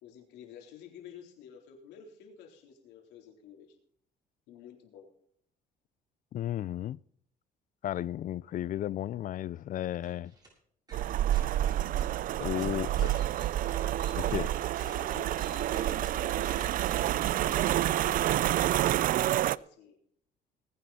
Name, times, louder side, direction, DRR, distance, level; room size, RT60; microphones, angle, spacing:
voice 1, 0.0-3.8 4.5-5.1 12.4-13.0 14.8-16.8 17.4-18.8 19.2-20.0, left 7 dB, 90° left, 3.7 m, -50 dB
voice 2, 6.3-7.0 7.8-10.3 12.4-13.1 14.2-14.5, left 12 dB, 50° left, 0.5 m, -34 dB
sound 1, 10.0-10.5 10.9-12.2 12.6-16.9, right 2 dB, 25° right, 7.0 m, -53 dB
sound 2, 10.9-19.6, right 13 dB, 55° right, 0.4 m, -28 dB
19.5 x 9.7 x 4.2 m
cardioid pair, 110°, 17 cm